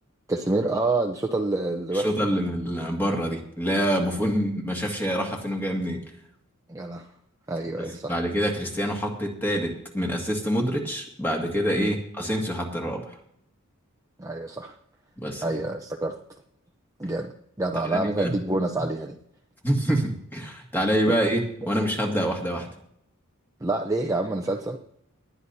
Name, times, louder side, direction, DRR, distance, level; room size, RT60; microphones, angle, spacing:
voice 1, 0.3-2.3 6.7-7.1 7.5-8.1 11.7-11.9 14.2-14.8 15.4-16.2 17.0-17.3 17.6-19.2 23.6-24.8, right 2 dB, 15° right, 2 dB, 0.7 m, -27 dB
voice 2, 1.9-6.0 7.8-13.2 15.2-15.5 17.9-18.4 19.6-22.7, equal, 10° left, 0 dB, 2.1 m, -26 dB
20.0 x 11.0 x 2.8 m, 0.71 s
head